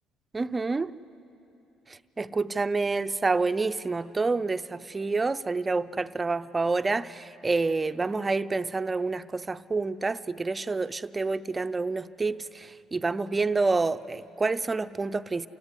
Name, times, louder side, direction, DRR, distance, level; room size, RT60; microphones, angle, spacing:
voice 1, 0.3-0.9 1.9-15.5, right 3 dB, 25° right, 0.6 m, -28 dB
27.5 x 17.0 x 9.8 m
supercardioid pair, 70°, 0 cm